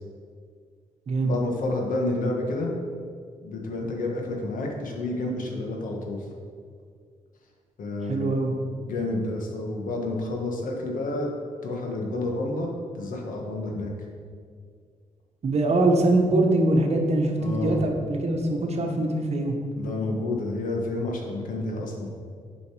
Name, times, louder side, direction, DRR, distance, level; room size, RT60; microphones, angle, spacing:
voice 1, 1.2-2.7 3.4-6.2 7.8-8.4 8.8-11.3 11.6-13.9 17.4-17.8 19.8-22.1, left 2 dB, 70° left, 0 dB, 1.3 m, -29 dB
voice 2, 8.1-8.5 15.4-19.5, right 2 dB, 50° right, 2 dB, 1.1 m, -23 dB
6.9 x 5.2 x 4.8 m, 2.1 s
cardioid pair, 85°, 14 cm